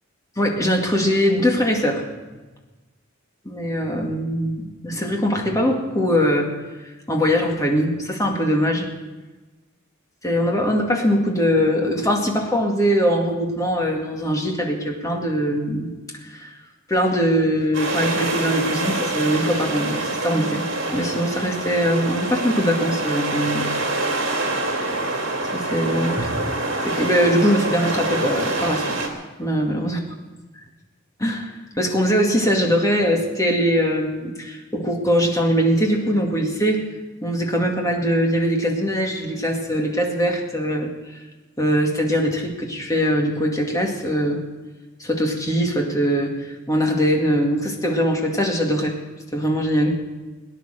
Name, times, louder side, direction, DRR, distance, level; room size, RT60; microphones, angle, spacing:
voice 1, 0.4-2.1 3.4-6.6 7.1-8.9 10.2-15.9 16.2-16.5 16.9-20.6 20.9-23.7 25.5-26.4 26.8-29.0 29.4-30.0 30.5-30.6 31.2-36.8 37.2-41.2 41.6-44.4 45.0-49.0 49.3-50.0, equal, 15° left, 1 dB, 2.1 m, -21 dB
sound 1, 17.7-29.1, right 2 dB, 65° right, 2.6 m, -26 dB
18.5 x 10.0 x 6.7 m, 1.2 s
head